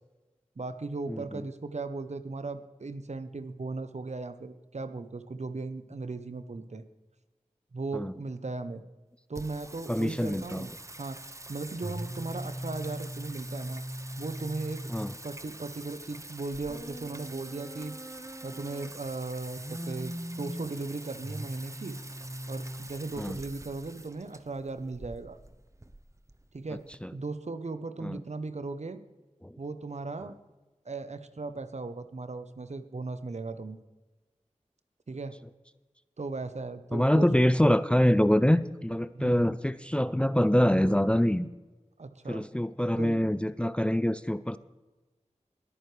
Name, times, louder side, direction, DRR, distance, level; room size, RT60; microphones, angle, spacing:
voice 1, 0.6-6.8 7.7-8.8 9.3-10.7 11.0-13.8 14.2-14.8 15.2-18.0 18.4-22.0 22.5-25.4 26.5-26.8 27.1-29.0 29.6-30.3 30.8-33.8 35.1-35.4 36.2-37.5 39.1-39.6 42.0-42.4 43.0-43.5, right 3 dB, 60° right, 11 dB, 0.9 m, -37 dB
voice 2, 1.1-1.4 7.9-8.1 9.9-10.7 14.9-15.1 23.2-23.4 27.0-27.1 28.0-28.2 29.4-29.5 36.9-41.5 42.3-44.6, equal, 10° left, 14 dB, 0.4 m, -25 dB
Singing, 9.4-27.0, right 1 dB, 25° right, 0.8 m, -41 dB
21.5 x 9.3 x 3.3 m, 1.2 s
wide cardioid pair, 45°, 13 cm